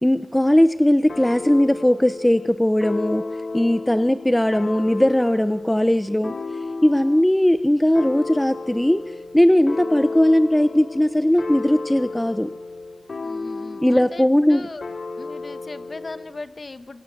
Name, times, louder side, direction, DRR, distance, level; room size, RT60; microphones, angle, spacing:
voice 1, 0.0-3.2 3.5-6.3 6.8-9.0 9.3-12.5 13.8-14.7, left 1 dB, 10° left, 11 dB, 0.8 m, -18 dB
sound 1, 1.1-7.3 7.9-14.2 14.8-16.3, left 3 dB, 60° left, 2.9 m, -33 dB
voice 2, 13.2-14.8 15.2-17.0, left 3 dB, 40° left, 10 dB, 1.6 m, -38 dB
27.5 x 24.0 x 7.3 m, 0.97 s
wide cardioid pair, 105°, 0 cm